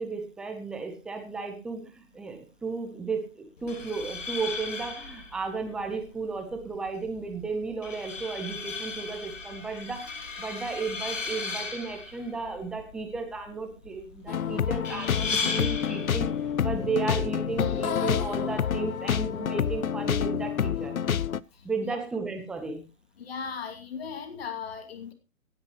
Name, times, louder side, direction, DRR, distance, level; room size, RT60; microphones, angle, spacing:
voice 1, 0.0-16.3 16.6-20.9 21.6-22.8, right 4 dB, ahead, 5 dB, 0.7 m, -34 dB
sound 1, 3.6-18.6, left 4 dB, 65° left, 2.6 m, -37 dB
sound 2, 14.3-21.4, left 8 dB, 85° left, 0.6 m, -28 dB
voice 2, 23.2-25.1, left 6 dB, 45° left, 7 dB, 2.5 m, -37 dB
17.5 x 9.7 x 3.0 m, 0.29 s
figure-of-eight pair, 140°, 41 cm